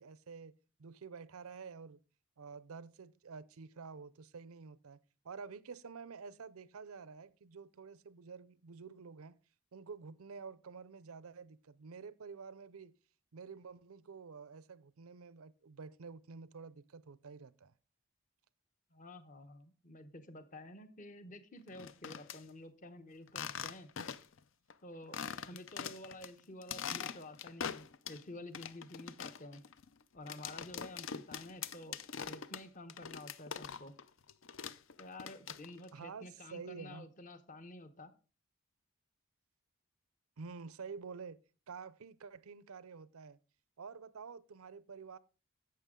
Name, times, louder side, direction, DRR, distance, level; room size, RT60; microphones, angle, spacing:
voice 1, 0.0-2.0 2.4-5.0 5.2-9.4 9.7-12.9 13.3-17.7 35.9-37.1 40.4-41.4 41.7-43.4 43.8-45.2, right 5 dB, 85° right, 0.6 m, -49 dB
voice 2, 18.9-23.9 24.8-25.2 25.4-29.6 30.1-32.0 32.3-33.9 35.0-38.1, left 1 dB, 35° left, 0.9 m, -50 dB
sound 1, 21.7-22.4 23.3-24.4 24.7-24.8 25.1-26.3 26.6-28.2 28.5-34.0 34.3-35.9, left 7 dB, 60° left, 0.5 m, -43 dB
11.0 x 7.7 x 3.7 m
head